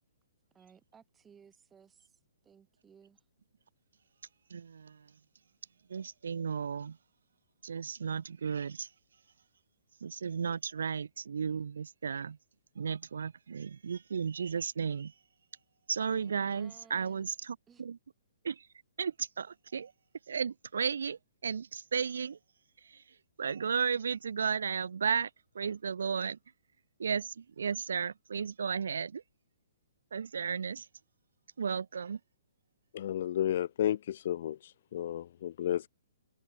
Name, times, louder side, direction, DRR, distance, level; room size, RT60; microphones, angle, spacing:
voice 1, 0.5-3.3 16.2-17.3 17.7-17.8, right 7 dB, 10° right, 2.6 m, -60 dB
voice 2, 4.5-5.1 5.9-7.0 7.6-8.9 10.0-12.4 12.8-15.1 15.9-18.0 18.4-18.7 19.0-19.9 20.3-22.4 22.8-23.0 23.4-25.3 25.6-26.4 27.0-29.2 30.1-30.9 31.6-32.2, right 6 dB, 80° right, 1.7 m, -34 dB
voice 3, 32.9-35.9, left 11 dB, 45° left, 0.4 m, -32 dB
hypercardioid pair, 170°, 0 cm